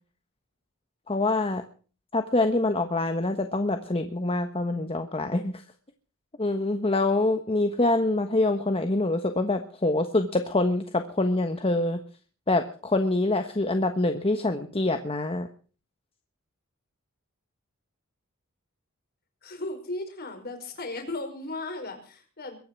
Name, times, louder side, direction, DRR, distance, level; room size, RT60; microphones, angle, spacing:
voice 1, 1.1-1.6 2.1-5.6 6.4-12.0 12.5-15.5, left 2 dB, 25° left, 7 dB, 1.3 m, -25 dB
voice 2, 19.4-22.6, left 2 dB, 45° left, 5 dB, 5.2 m, -36 dB
22.5 x 9.8 x 6.1 m, 0.40 s
head